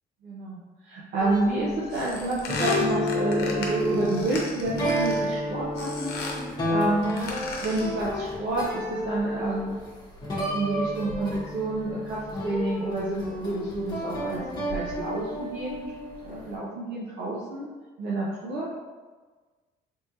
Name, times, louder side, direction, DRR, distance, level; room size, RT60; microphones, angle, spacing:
voice 1, 0.2-6.4 6.7-9.8 10.5-15.9 16.2-17.7 18.0-18.7, right 2 dB, 85° right, -7 dB, 0.8 m, -29 dB
sound 1, 1.2-16.6, left 1 dB, 25° left, 1.1 m, -31 dB
sound 2, 1.9-5.3 5.8-6.5 7.0-8.0, left 3 dB, 65° left, 0.8 m, -36 dB
3.4 x 3.4 x 2.8 m, 1.3 s
cardioid pair, 110°, 17 cm